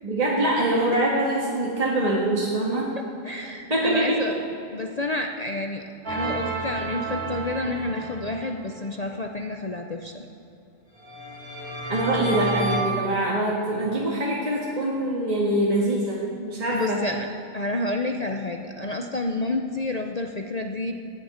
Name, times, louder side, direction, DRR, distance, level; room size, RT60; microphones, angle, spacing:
voice 1, 0.0-2.9 3.7-4.4 11.9-17.0, right 1 dB, 25° right, -5 dB, 1.8 m, -24 dB
voice 2, 3.2-4.3 4.7-5.8 6.1-10.2 16.7-17.3 17.5-20.9, left 2 dB, 55° left, 3 dB, 0.4 m, -29 dB
sound 1, 6.1-8.7 11.0-12.8, right 2 dB, 65° right, 2.8 m, -30 dB
10.5 x 9.4 x 8.7 m, 2.8 s
omnidirectional pair, 1.6 m